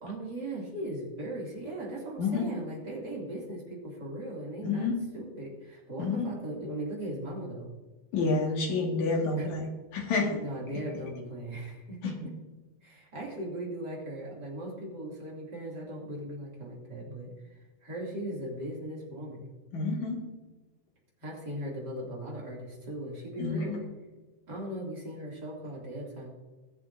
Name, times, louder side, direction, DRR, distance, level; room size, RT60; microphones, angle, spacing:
voice 1, 0.0-4.9 5.1-7.7 9.3-9.5 10.3-12.3 12.8-19.5 21.2-23.8 24.5-26.3, right 1 dB, 30° right, -3 dB, 2.4 m, -38 dB
voice 2, 4.6-5.0 6.0-6.3 8.1-9.7 9.9-10.3 12.0-12.1 19.7-20.2 23.4-23.8, left 4 dB, 50° left, 0 dB, 2.7 m, -29 dB
21.5 x 7.6 x 2.7 m, 1.2 s
omnidirectional pair, 5.1 m